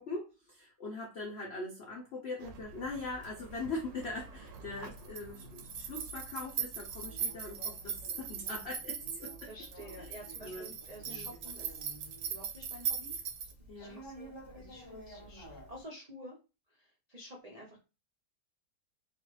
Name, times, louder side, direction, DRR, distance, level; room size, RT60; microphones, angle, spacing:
voice 1, 0.0-9.5 10.0-10.7 11.1-11.3 13.7-14.0, left 2 dB, 75° left, -1 dB, 0.6 m, -41 dB
sound 1, 2.4-13.5, right 7 dB, 80° right, 1.3 m, -41 dB
Conversation, 2.6-15.8, right 1 dB, 25° left, 0.6 m, -53 dB
voice 2, 9.5-11.8 12.3-13.2 13.8-16.4 16.7-17.8, equal, 60° right, -3 dB, 0.4 m, -50 dB
3.0 x 2.4 x 3.1 m, 0.30 s
omnidirectional pair, 1.9 m